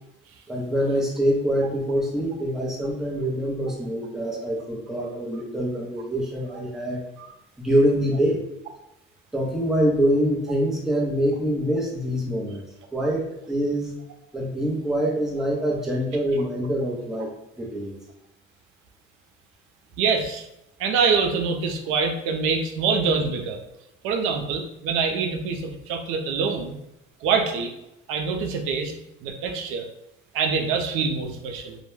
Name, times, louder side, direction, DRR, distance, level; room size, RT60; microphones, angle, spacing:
voice 1, 0.5-7.0 7.6-8.4 9.3-12.6 12.9-14.0 14.3-18.0, equal, ahead, -4 dB, 0.6 m, -25 dB
voice 2, 20.0-20.4 20.8-23.6 24.0-26.8 27.2-27.7 28.1-28.9 29.2-29.9 30.3-31.8, right 5 dB, 85° right, 4 dB, 0.5 m, -25 dB
2.2 x 2.1 x 3.1 m, 0.86 s
cardioid pair, 125°, 21 cm